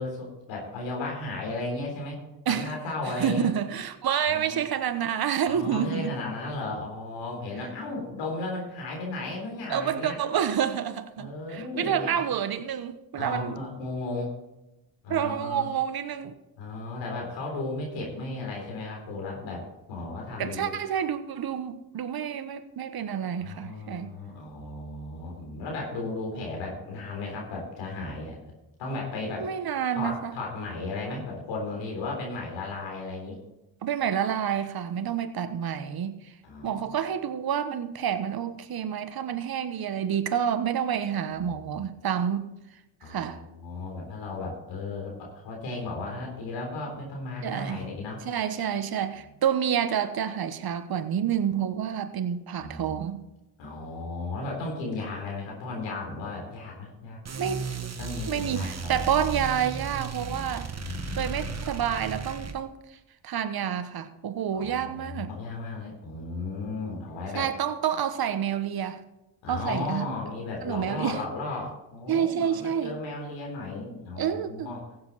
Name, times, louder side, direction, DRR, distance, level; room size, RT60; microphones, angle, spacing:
voice 1, 0.0-2.2 2.5-3.5 4.3-4.6 5.5-10.2 11.2-12.2 13.2-14.3 15.0-15.7 16.6-20.7 23.4-28.4 28.8-29.5 29.9-33.4 36.4-37.0 41.4-41.8 43.0-48.2 52.6-53.0 53.6-57.2 58.0-59.0 60.8-61.5 64.5-67.5 69.4-74.8, left 2 dB, 85° left, 3.8 m, -35 dB
voice 2, 3.0-6.2 9.7-13.6 15.1-16.4 20.4-24.1 29.4-30.3 33.8-36.3 36.6-42.6 43.0-43.4 47.4-47.8 48.2-53.2 57.4-57.7 58.3-60.7 61.1-62.8 63.2-65.3 67.3-69.0 69.5-70.1 70.6-71.2 72.1-72.9 74.2-74.7, right 8 dB, 55° right, 1.2 m, -28 dB
sound 1, 57.3-62.6, right 5 dB, 35° right, 1.5 m, -35 dB
15.5 x 7.9 x 4.2 m
supercardioid pair, 55°, 43 cm